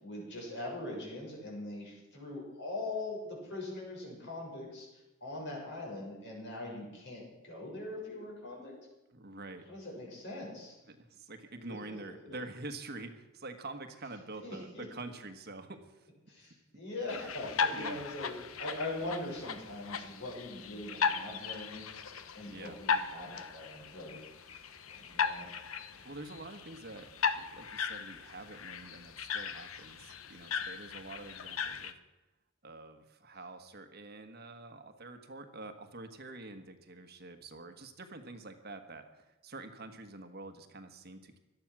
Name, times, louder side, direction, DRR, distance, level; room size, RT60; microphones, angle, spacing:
voice 1, 0.0-8.7 9.7-10.8 11.7-11.8 14.4-14.9 16.3-25.5 25.9-26.1, left 2 dB, 60° left, -2 dB, 6.9 m, -42 dB
voice 2, 9.1-9.6 10.9-16.1 16.7-16.8 17.7-18.1 22.5-22.8 26.0-27.1 27.3-31.9 32.6-41.4, right 2 dB, 50° right, 7 dB, 1.4 m, -46 dB
sound 1, 17.1-31.9, left 6 dB, 85° left, 1.0 m, -37 dB
18.0 x 12.5 x 6.1 m, 1.0 s
head